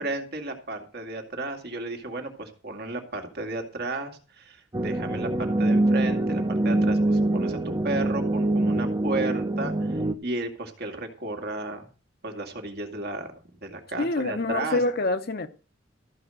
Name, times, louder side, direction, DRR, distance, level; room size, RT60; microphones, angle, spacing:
voice 1, 0.0-11.9 12.2-13.3 13.6-14.8, right 2 dB, 55° right, 2.2 m, -33 dB
sound 1, 4.7-10.1, right 1 dB, 20° right, 0.8 m, -24 dB
voice 2, 14.0-15.5, left 2 dB, 55° left, 1.0 m, -26 dB
14.0 x 5.0 x 7.6 m
head